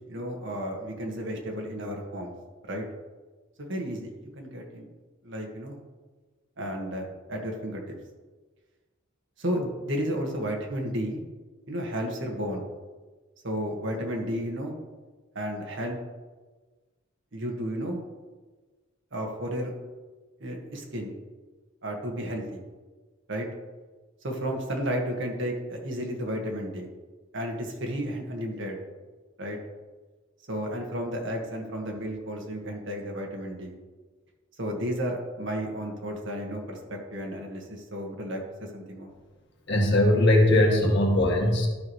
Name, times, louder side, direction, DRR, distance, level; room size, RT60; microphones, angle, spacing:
voice 1, 0.1-2.3 2.7-2.8 3.6-4.9 5.2-5.8 6.6-7.8 9.4-11.2 11.7-12.7 13.4-14.7 15.3-16.0 17.3-18.0 19.1-19.7 20.4-21.1 21.8-22.6 23.3-23.5 24.2-26.9 27.3-28.8 29.4-29.6 30.5-33.7 34.6-38.4 38.7-39.1, equal, 65° right, 1 dB, 1.7 m, -32 dB
voice 2, 39.7-41.7, left 1 dB, 60° left, 0 dB, 1.7 m, -20 dB
13.0 x 6.0 x 3.2 m, 1.3 s
head